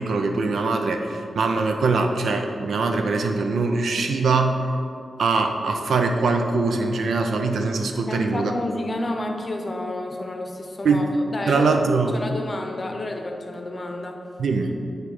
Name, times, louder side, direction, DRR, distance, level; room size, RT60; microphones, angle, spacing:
voice 1, 0.0-4.6 5.2-8.5 10.8-11.1 11.5-12.2 14.4-14.8, right 3 dB, 85° right, 5 dB, 0.5 m, -22 dB
voice 2, 8.1-11.1 11.3-11.6 12.1-14.2, left 1 dB, 35° left, 3 dB, 0.7 m, -30 dB
8.9 x 3.2 x 4.9 m, 2.5 s
wide cardioid pair, 95°, 0 cm